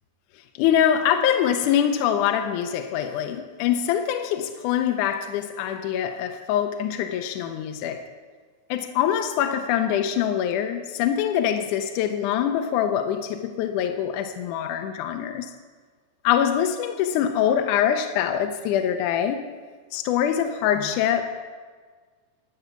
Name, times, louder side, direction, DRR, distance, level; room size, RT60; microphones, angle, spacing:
voice 1, 0.6-8.0 8.7-15.5 16.2-19.4 19.9-21.4, left 9 dB, 80° left, 6 dB, 2.1 m, -24 dB
12.5 x 7.0 x 8.1 m, 1.5 s
omnidirectional pair, 3.7 m